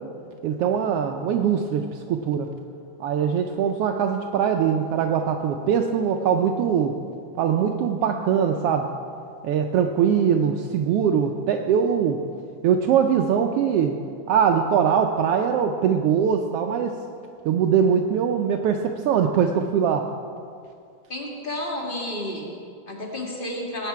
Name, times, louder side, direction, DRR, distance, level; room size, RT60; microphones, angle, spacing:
voice 1, 0.4-2.5 3.0-6.9 7.4-8.9 9.4-12.2 12.6-14.0 14.3-16.9 17.4-20.1, right 7 dB, 85° right, 4 dB, 1.3 m, -22 dB
voice 2, 21.1-23.9, left 1 dB, 25° left, -1 dB, 1.3 m, -31 dB
18.0 x 8.9 x 4.6 m, 2.3 s
omnidirectional pair, 3.3 m